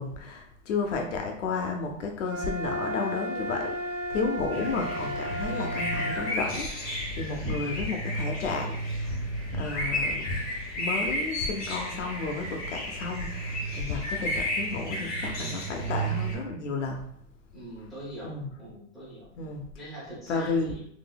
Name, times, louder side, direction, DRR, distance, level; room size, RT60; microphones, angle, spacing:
voice 1, 0.0-9.2 9.5-10.3 10.8-17.1 18.2-18.5 19.4-19.7 20.3-20.7, left 4 dB, 70° left, 3 dB, 0.6 m, -32 dB
sound 1, 2.3-6.4, equal, 85° right, 1.2 m, -34 dB
sound 2, 4.5-16.3, equal, 25° left, 1.2 m, -32 dB
voice 2, 17.5-19.3 19.7-20.8, right 1 dB, ahead, -11 dB, 0.5 m, -42 dB
3.7 x 2.7 x 2.2 m, 0.70 s
supercardioid pair, 175°, 38 cm